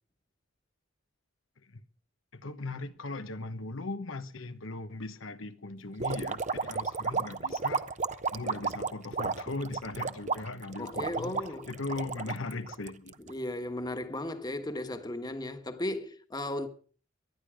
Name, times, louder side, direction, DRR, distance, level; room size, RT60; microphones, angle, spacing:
voice 1, 2.3-7.9 8.3-13.2, left 2 dB, 85° left, 1.1 m, -39 dB
sound 1, 6.0-13.3, right 5 dB, 35° right, 0.8 m, -33 dB
voice 2, 10.8-11.7 13.3-16.7, left 1 dB, 20° left, 1.4 m, -35 dB
19.0 x 12.0 x 5.0 m
head